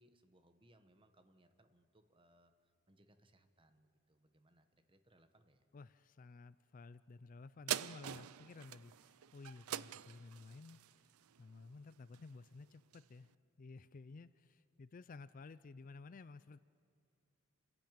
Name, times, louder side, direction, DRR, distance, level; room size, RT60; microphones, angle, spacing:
voice 1, 0.0-5.7, right 1 dB, 25° right, 8 dB, 1.1 m, -70 dB
voice 2, 5.7-11.0 11.4-13.3 13.6-16.6, left 3 dB, 40° left, 15 dB, 0.4 m, -54 dB
sound 1, 7.7-12.4 12.9-13.0, right 11 dB, 85° right, 0.4 m, -44 dB
27.5 x 10.5 x 8.9 m, 2.4 s
head